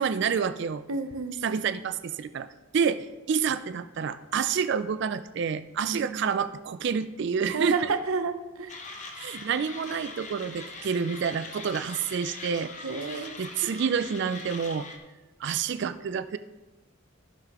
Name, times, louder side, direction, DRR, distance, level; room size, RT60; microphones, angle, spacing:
voice 1, 0.0-0.8 1.4-2.5 2.7-7.9 9.2-12.7 13.4-14.9 15.4-16.4, right 6 dB, 55° right, 12 dB, 0.3 m, -28 dB
voice 2, 0.9-1.4 5.8-6.3 7.5-8.8 12.8-13.8, right 4 dB, 75° right, 9 dB, 0.7 m, -31 dB
Mechanisms, 8.7-15.0, left 3 dB, 35° left, 0.8 m, -42 dB
14.5 x 5.8 x 2.9 m, 1.1 s
head